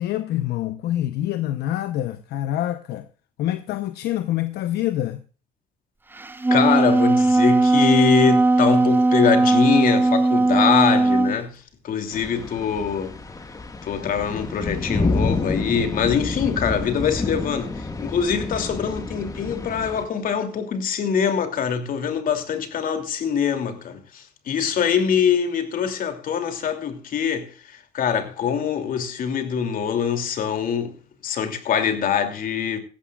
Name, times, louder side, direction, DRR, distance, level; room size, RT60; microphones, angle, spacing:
voice 1, 0.0-3.1 3.4-5.2, left 13 dB, 75° left, 0.9 m, -26 dB
Wind instrument woodwind instrument, 6.2-11.4, right 2 dB, 10° right, 0.9 m, -18 dB
voice 2, 6.5-11.6 11.8-13.1 13.8-27.5 27.9-31.0 31.2-32.8, left 7 dB, 55° left, 2.8 m, -23 dB
sound 1, 12.1-20.0, left 3 dB, 20° left, 1.8 m, -28 dB
16.5 x 15.0 x 2.4 m
cardioid pair, 110°, 17 cm